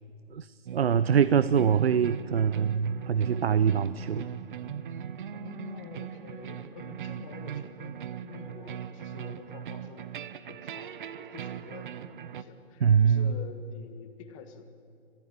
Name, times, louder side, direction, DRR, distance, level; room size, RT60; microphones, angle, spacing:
voice 1, 0.3-4.3 12.8-13.3, right 7 dB, 70° right, 15 dB, 0.7 m, -24 dB
sound 1, 0.7-12.4, right 9 dB, 50° right, 1.0 m, -39 dB
voice 2, 5.3-10.1 10.5-14.7, left 6 dB, 30° left, 8 dB, 1.6 m, -47 dB
27.0 x 15.5 x 8.7 m, 2.5 s
figure-of-eight pair, 130°, 32 cm